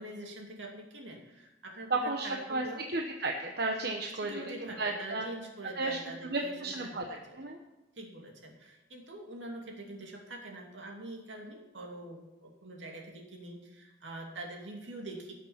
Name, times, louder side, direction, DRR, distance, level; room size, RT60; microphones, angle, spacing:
voice 1, 0.0-2.8 4.2-6.6 6.8-7.4 8.0-15.3, right 1 dB, 75° right, 0 dB, 2.6 m, -44 dB
voice 2, 1.9-4.3 4.6-5.3 5.7-7.1 7.4-7.6, right 2 dB, 55° right, 2 dB, 1.0 m, -33 dB
17.5 x 6.8 x 5.8 m, 1.0 s
head